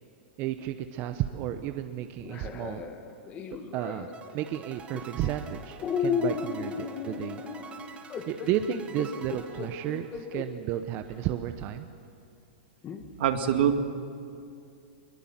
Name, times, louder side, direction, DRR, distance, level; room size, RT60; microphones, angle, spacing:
voice 1, 0.4-2.8 3.7-7.4 8.3-11.9, right 11 dB, 40° right, 8 dB, 0.9 m, -32 dB
sound 1, 2.2-4.1 4.9-5.3 5.8-10.5 11.1-11.2 12.8-13.0, left 6 dB, 25° left, 2.0 m, -34 dB
sound 2, 4.1-10.4, right 5 dB, 20° right, 2.0 m, -47 dB
voice 2, 13.2-13.8, right 9 dB, 70° right, 6 dB, 2.1 m, -23 dB
22.0 x 22.0 x 7.5 m, 2.4 s
hypercardioid pair, 135°, 6 cm